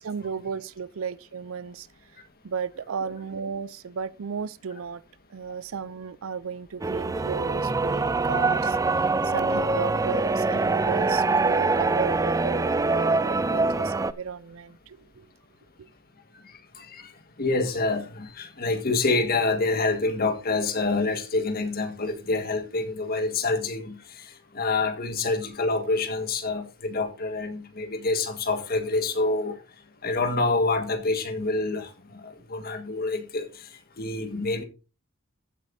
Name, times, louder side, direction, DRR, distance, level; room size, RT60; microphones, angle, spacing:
voice 1, 0.0-1.9 2.4-5.0 5.3-15.2, right 6 dB, 85° right, 0.5 m, -34 dB
sound 1, 6.8-14.1, right 3 dB, 15° right, 0.4 m, -24 dB
voice 2, 16.8-17.1 17.4-29.5 30.0-33.7 34.0-34.6, left 3 dB, 50° left, 1.6 m, -27 dB
14.5 x 8.4 x 2.7 m
head